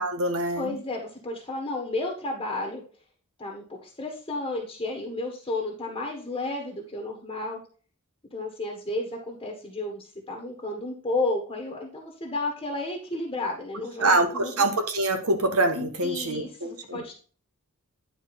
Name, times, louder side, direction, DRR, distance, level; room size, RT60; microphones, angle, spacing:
voice 1, 0.0-0.7 14.0-17.0, right 2 dB, 75° right, 7 dB, 1.4 m, -25 dB
voice 2, 0.6-2.8 3.4-7.6 8.3-14.6 16.0-17.1, left 2 dB, 25° left, 0 dB, 1.4 m, -32 dB
9.9 x 4.5 x 4.2 m, 0.41 s
head